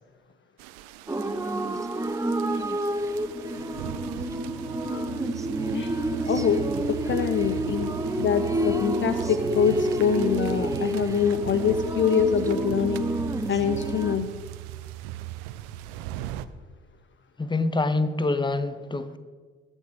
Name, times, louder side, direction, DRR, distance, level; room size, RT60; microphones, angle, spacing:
sound 1, 0.6-16.5, right 13 dB, 65° right, 0.7 m, -38 dB
sound 2, 1.1-14.2, right 1 dB, 10° right, 0.8 m, -29 dB
voice 1, 6.3-13.1 13.5-14.3, left 7 dB, 35° left, 0.7 m, -25 dB
voice 2, 17.4-19.2, left 2 dB, 15° left, 1.0 m, -26 dB
20.0 x 8.2 x 3.6 m
figure-of-eight pair, 50°, 33 cm